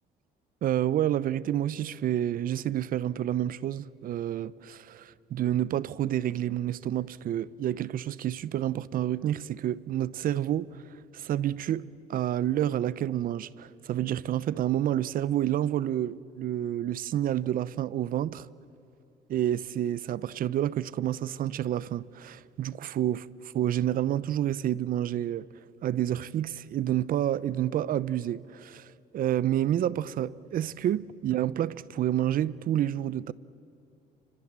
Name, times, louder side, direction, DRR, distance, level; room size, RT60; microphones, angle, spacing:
voice 1, 0.6-10.8 11.1-18.5 19.3-23.3 23.5-25.5 25.8-33.3, right 11 dB, 55° right, 0.8 m, -29 dB
30.0 x 26.0 x 7.5 m
cardioid pair, 110°, 17 cm